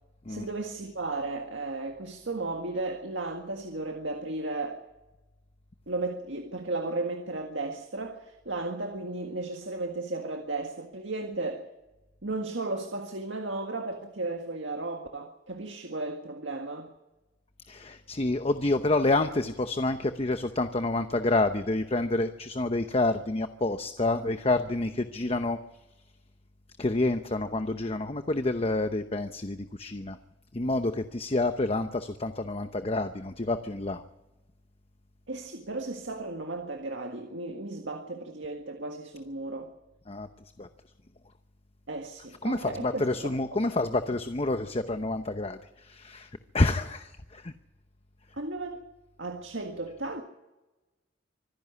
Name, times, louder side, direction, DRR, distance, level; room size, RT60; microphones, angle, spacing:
voice 1, 0.3-4.8 5.9-11.7 12.2-16.9 35.3-39.7 41.9-43.6 48.3-48.8 49.2-50.2, right 2 dB, 75° right, 1.8 m, -35 dB
voice 2, 17.7-25.6 26.8-30.2 30.5-34.0 40.1-40.3 40.6-40.7 42.4-47.5, left 2 dB, 30° left, 0.8 m, -28 dB
25.0 x 11.0 x 9.7 m
head